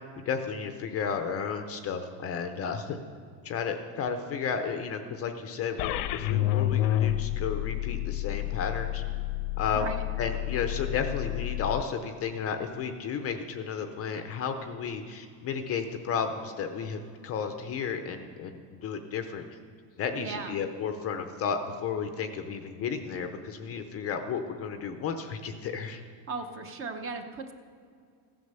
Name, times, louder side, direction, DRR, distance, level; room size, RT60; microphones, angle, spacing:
voice 1, 0.3-3.0 3.4-9.0 9.6-9.9 10.2-19.4 20.0-26.0, left 6 dB, 30° left, 7 dB, 0.6 m, -33 dB
sound 1, 5.8-11.8, left 14 dB, 80° left, 0.8 m, -30 dB
voice 2, 20.2-20.6 26.3-27.5, right 4 dB, 30° right, 6 dB, 0.8 m, -36 dB
15.5 x 9.6 x 6.7 m, 2.3 s
cardioid pair, 175°, 47 cm